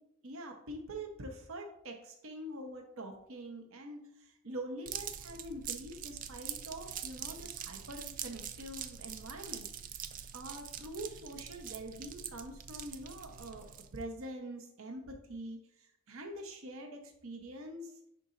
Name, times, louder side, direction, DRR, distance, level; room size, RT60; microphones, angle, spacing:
voice 1, 0.2-9.7 10.3-17.9, right 1 dB, 85° right, 3 dB, 0.8 m, -45 dB
sound 1, 4.9-14.0, right 9 dB, 40° right, 0.3 m, -44 dB
10.5 x 4.0 x 2.5 m, 0.76 s
head